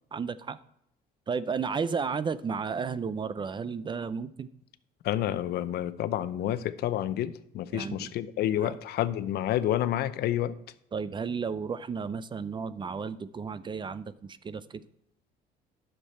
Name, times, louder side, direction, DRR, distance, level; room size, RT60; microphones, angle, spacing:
voice 1, 0.1-0.6 1.3-4.5 7.7-8.1 8.6-8.8 10.9-14.8, right 5 dB, 30° right, 15 dB, 0.5 m, -33 dB
voice 2, 5.0-10.6, left 12 dB, 70° left, 14 dB, 0.6 m, -29 dB
9.9 x 6.7 x 4.3 m, 0.77 s
cardioid pair, 110°, 17 cm